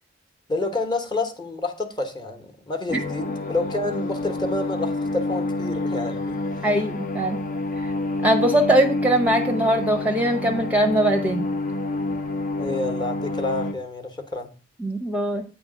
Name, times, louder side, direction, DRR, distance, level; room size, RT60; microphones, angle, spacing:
voice 1, 0.5-6.4 12.6-14.5, left 2 dB, 20° left, 1.1 m, -28 dB
sound 1, 2.9-13.7, left 2 dB, 40° left, 0.7 m, -28 dB
voice 2, 6.6-7.4 7.8-7.9 8.2-11.4 14.8-15.4, right 1 dB, 10° right, 0.7 m, -21 dB
9.0 x 3.4 x 6.1 m
head